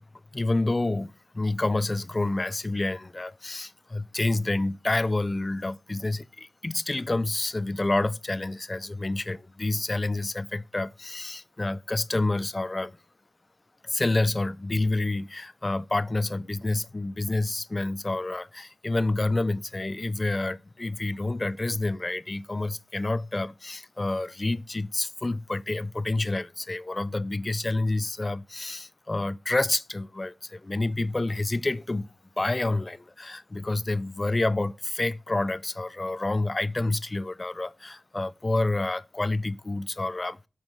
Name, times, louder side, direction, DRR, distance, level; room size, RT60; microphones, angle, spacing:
voice 1, 0.3-13.0 13.8-32.1 32.4-40.5, left 2 dB, 30° left, 0.4 m, -28 dB
6.1 x 4.0 x 5.2 m
cardioid pair, 55°, 0 cm